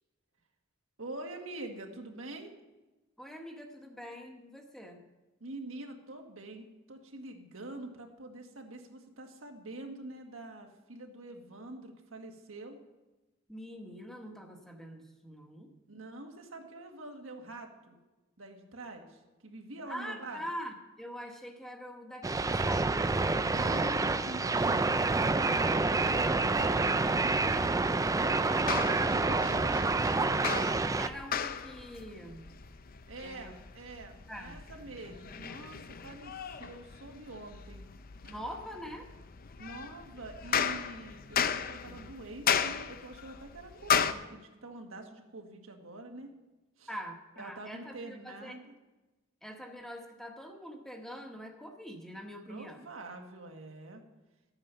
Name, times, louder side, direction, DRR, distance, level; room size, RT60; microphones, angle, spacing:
voice 1, 1.0-2.5 5.4-12.8 15.9-18.0 18.4-20.4 23.5-29.9 33.1-37.9 38.2-38.3 39.6-46.3 46.8-46.9 47.4-48.7 52.4-54.0, right 2 dB, 75° right, 4 dB, 1.6 m, -46 dB
voice 2, 3.2-5.0 13.5-15.7 19.9-24.0 30.9-32.5 33.2-33.5 34.3-34.6 38.3-39.1 46.9-48.5 49.4-52.8, equal, ahead, 2 dB, 1.3 m, -44 dB
sound 1, 22.2-31.1, right 3 dB, 15° right, 0.4 m, -28 dB
sound 2, 28.4-44.1, left 7 dB, 45° left, 0.6 m, -36 dB
13.0 x 8.8 x 5.6 m, 1.1 s
head